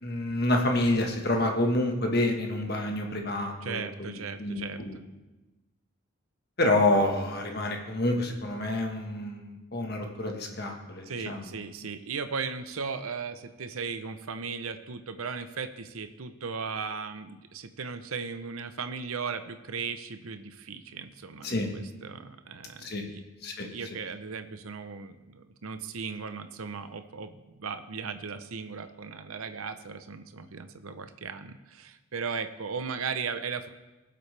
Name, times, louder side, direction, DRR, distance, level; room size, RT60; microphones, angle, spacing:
voice 1, 0.0-4.1 4.4-5.0 6.6-11.5 21.4-21.7 22.8-23.0 23.4-23.7, left 1 dB, 50° left, 3 dB, 1.4 m, -28 dB
voice 2, 3.6-4.8 11.1-23.2 23.6-33.7, right 5 dB, 85° right, 9 dB, 0.7 m, -37 dB
19.5 x 7.8 x 3.3 m, 1.1 s
head